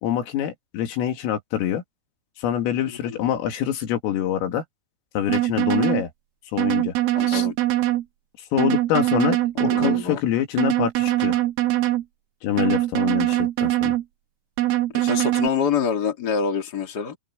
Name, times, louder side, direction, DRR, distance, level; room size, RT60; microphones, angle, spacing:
voice 1, 0.0-1.8 2.4-4.6 5.2-6.1 6.5-6.9 7.3-7.5 8.5-11.4 12.4-14.0, left 10 dB, 80° left, 5.2 m, -25 dB
sound 1, 5.3-6.0 6.6-8.0 8.6-10.0 10.6-12.0 12.6-14.0 14.6-15.5, right 15 dB, 85° right, 2.1 m, -22 dB
voice 2, 7.1-7.5 9.6-10.2 13.3-13.4 14.9-17.2, left 6 dB, 40° left, 1.5 m, -26 dB
open air
omnidirectional pair, 5.9 m